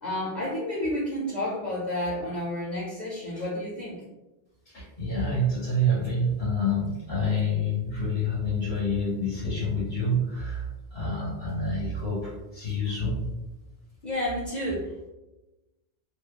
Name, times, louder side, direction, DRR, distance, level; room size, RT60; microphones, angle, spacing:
voice 1, 0.0-4.0 14.0-15.1, left 1 dB, 55° left, -5 dB, 0.6 m, -30 dB
voice 2, 4.6-13.2, left 1 dB, 85° left, -9 dB, 1.4 m, -27 dB
2.7 x 2.1 x 2.4 m, 1.0 s
omnidirectional pair, 1.1 m